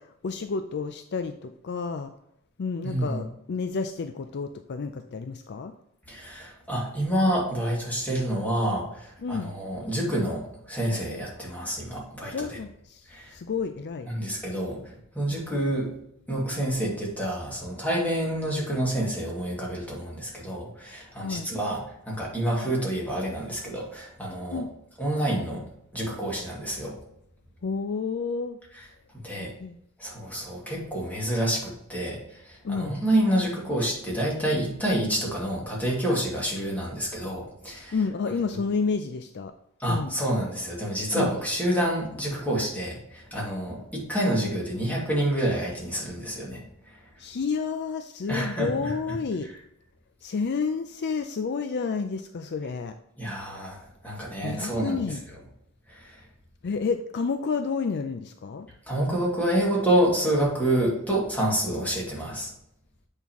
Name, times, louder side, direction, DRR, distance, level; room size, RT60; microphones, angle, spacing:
voice 1, 0.0-2.1 2.6-5.7 9.2-9.5 12.3-14.1 15.3-15.4 21.2-21.5 24.5-24.7 27.6-28.6 29.4-29.8 32.6-32.9 37.9-39.5 39.9-40.1 41.1-41.3 47.2-49.5 50.2-53.0 54.4-55.2 56.6-58.7, left 5 dB, 50° left, 9 dB, 0.4 m, -30 dB
voice 2, 2.8-3.2 6.1-12.5 13.1-13.4 14.1-14.8 15.1-15.9 16.3-24.6 25.0-25.6 25.9-27.0 29.2-29.5 30.0-37.9 39.8-46.6 48.3-48.9 53.2-53.8 54.0-55.0 55.9-56.2 58.9-62.5, right 1 dB, 5° left, -4 dB, 2.2 m, -28 dB
8.3 x 5.4 x 3.0 m, 0.77 s
head